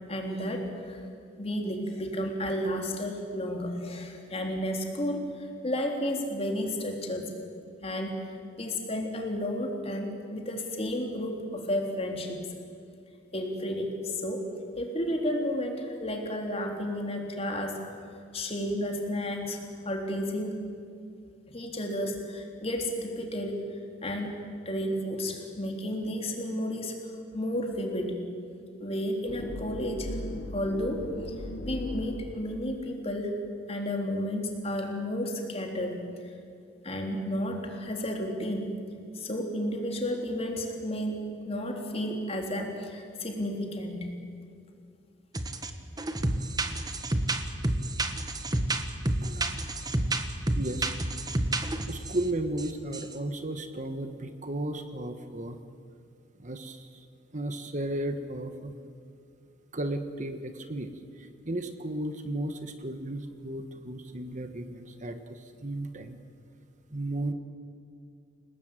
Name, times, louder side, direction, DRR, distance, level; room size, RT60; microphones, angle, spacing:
voice 1, 0.1-1.0 1.4-7.3 7.8-8.2 8.6-12.5 13.3-14.5 14.8-17.8 18.3-20.6 21.5-24.4 24.7-27.0 27.3-28.2 28.8-30.2 30.5-31.1 31.6-33.4 33.7-36.3 36.8-38.7 39.1-44.1, equal, 30° left, 2 dB, 3.7 m, -32 dB
sound 1, 29.3-32.8, left 1 dB, 75° left, 1.4 m, -38 dB
sound 2, 45.3-45.7 46.0-52.2 52.6-52.7 52.9-53.1, right 1 dB, 20° right, 1.4 m, -29 dB
voice 2, 49.2-49.6 50.1-50.3 50.5-50.9 51.9-55.6 56.4-57.0 57.3-58.8 59.7-66.2 66.9-67.3, right 1 dB, 40° right, 8 dB, 1.3 m, -34 dB
29.0 x 19.0 x 9.1 m, 2.4 s
head